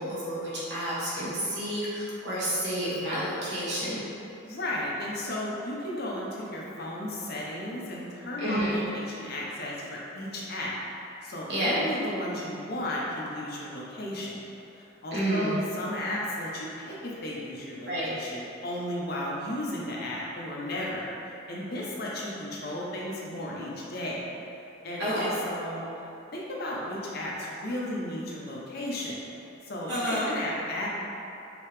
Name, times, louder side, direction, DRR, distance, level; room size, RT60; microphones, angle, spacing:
voice 1, 0.0-4.0 8.4-8.7 11.5-11.8 15.1-15.5 17.9-18.1 25.0-25.3 29.9-30.3, equal, 60° right, -9 dB, 1.3 m, -30 dB
voice 2, 4.5-10.7 11.2-14.4 14.7-21.1 21.5-24.3 24.8-25.8 26.3-29.2 29.7-30.9, left 1 dB, 50° left, -4 dB, 0.7 m, -34 dB
5.1 x 2.8 x 3.2 m, 2.9 s
head